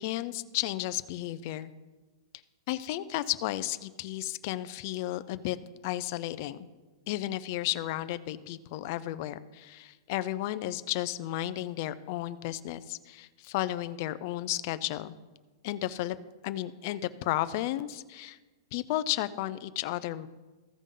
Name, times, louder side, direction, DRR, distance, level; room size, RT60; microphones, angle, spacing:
voice 1, 0.0-1.7 2.7-5.6 5.8-6.6 7.1-15.1 15.6-16.2 16.4-18.4 18.7-20.3, left 15 dB, 35° left, 13 dB, 0.3 m, -33 dB
14.5 x 5.3 x 3.7 m, 1.3 s
supercardioid pair, 175°, 2 cm